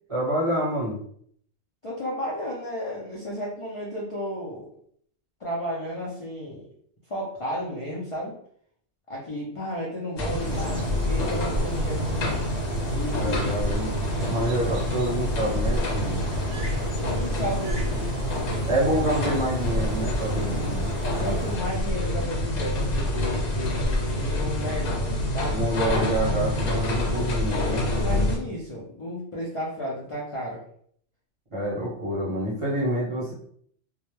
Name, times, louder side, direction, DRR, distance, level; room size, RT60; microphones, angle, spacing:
voice 1, 0.1-1.0 13.2-16.2 18.7-20.9 25.5-27.9 31.5-33.3, right 1 dB, 30° right, -6 dB, 0.7 m, -27 dB
voice 2, 1.8-4.7 5.4-6.6 7.1-8.3 9.1-12.4 12.9-13.6 16.5-17.9 21.2-25.8 27.9-30.6, equal, 50° left, -4 dB, 0.4 m, -33 dB
sound 1, 10.2-28.4, left 1 dB, 85° left, 1.0 m, -27 dB
sound 2, 10.4-21.6, right 2 dB, 70° right, 0.9 m, -36 dB
2.2 x 2.1 x 3.0 m, 0.62 s
omnidirectional pair, 1.3 m